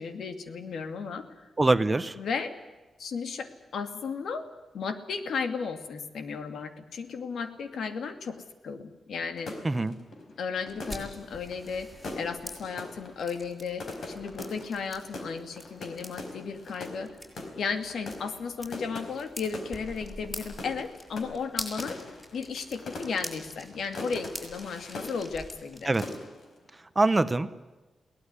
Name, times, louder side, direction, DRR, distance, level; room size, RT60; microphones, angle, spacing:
voice 1, 0.0-1.5 2.2-2.5 3.0-3.5 3.7-4.4 4.7-9.6 10.4-11.9 12.2-17.1 17.6-22.0 22.3-25.9, left 5 dB, 75° left, 8 dB, 2.5 m, -34 dB
voice 2, 1.6-2.1 9.6-9.9 25.9-26.0 27.0-27.6, right 2 dB, 15° right, 13 dB, 0.8 m, -24 dB
sound 1, 9.4-25.8 26.0-26.6, left 2 dB, 55° left, 4.4 m, -42 dB
sound 2, 10.7-26.2, equal, 10° left, 6.3 m, -45 dB
22.5 x 18.0 x 9.7 m, 1.2 s
wide cardioid pair, 175°, 0 cm